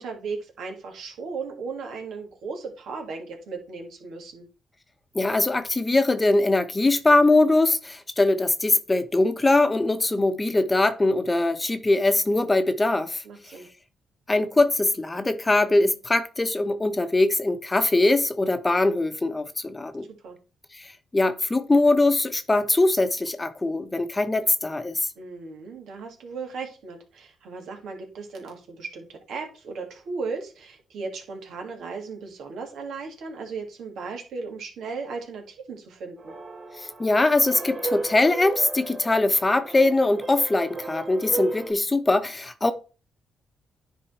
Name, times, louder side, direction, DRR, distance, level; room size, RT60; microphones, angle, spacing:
voice 1, 0.0-4.5 13.2-13.7 20.2-20.4 25.2-36.3, right 4 dB, 75° right, 2.2 m, -36 dB
voice 2, 5.1-13.2 14.3-20.1 20.7-25.1 36.8-42.7, left 2 dB, 20° left, 0.9 m, -22 dB
sound 1, 36.2-41.7, right 2 dB, 50° right, 2.8 m, -35 dB
9.9 x 3.7 x 4.3 m
cardioid pair, 70°, 0 cm